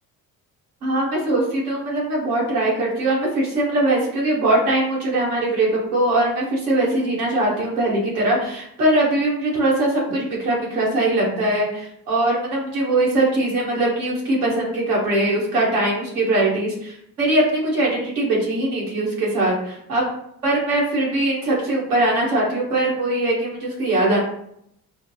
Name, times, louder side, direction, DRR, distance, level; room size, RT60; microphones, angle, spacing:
voice 1, 0.8-20.1 20.4-24.2, right 1 dB, 85° right, -4 dB, 1.0 m, -21 dB
4.5 x 2.1 x 2.6 m, 0.74 s
figure-of-eight pair, 45°, 44 cm